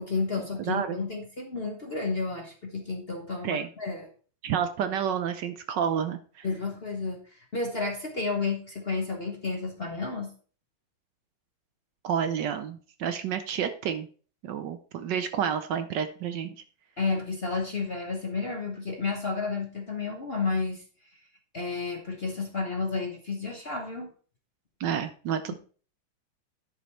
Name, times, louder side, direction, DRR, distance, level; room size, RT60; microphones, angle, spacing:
voice 1, 0.0-4.1 6.4-10.3 17.0-20.8 21.5-24.1, left 4 dB, 40° left, 2 dB, 1.0 m, -31 dB
voice 2, 0.6-1.0 3.4-3.7 4.4-6.5 12.0-14.1 14.4-16.5 24.8-25.5, right 8 dB, 70° right, 9 dB, 1.2 m, -30 dB
10.5 x 5.1 x 4.2 m, 0.41 s
omnidirectional pair, 2.2 m